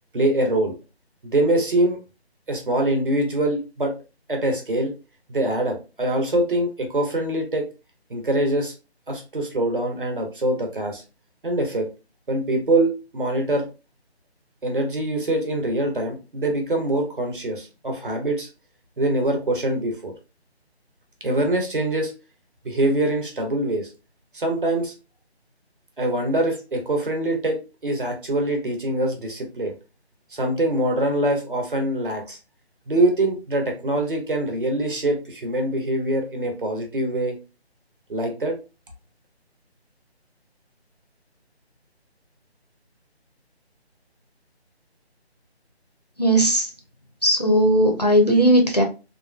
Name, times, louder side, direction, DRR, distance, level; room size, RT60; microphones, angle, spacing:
voice 1, 0.1-0.7 1.2-2.0 2.5-3.9 4.3-4.9 5.3-7.7 8.1-8.7 9.1-11.0 11.4-11.9 12.3-13.7 14.6-18.5 19.0-20.1 21.2-22.1 22.6-23.9 24.3-24.9 26.0-29.7 30.3-32.4 32.9-37.3 38.1-38.6, right 1 dB, 50° right, 2 dB, 0.9 m, -24 dB
voice 2, 46.2-46.7 47.2-48.8, right 1 dB, 40° left, 2 dB, 0.5 m, -17 dB
2.7 x 2.5 x 2.2 m, 0.30 s
figure-of-eight pair, 175°, 33 cm